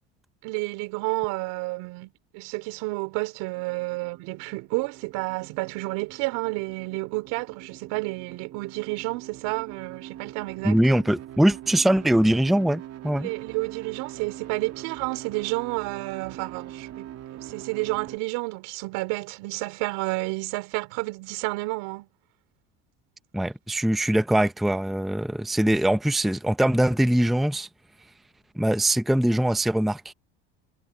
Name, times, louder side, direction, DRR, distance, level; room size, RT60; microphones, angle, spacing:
voice 1, 0.4-11.0 13.2-22.1, right 25 dB, 75° right, 4.4 m, -30 dB
sound 1, 3.5-18.2, right 12 dB, 50° right, 2.7 m, -43 dB
voice 2, 10.6-13.3 23.3-27.7 28.5-30.1, right 1 dB, ahead, 0.7 m, -22 dB
supercardioid pair, 85°, 33 cm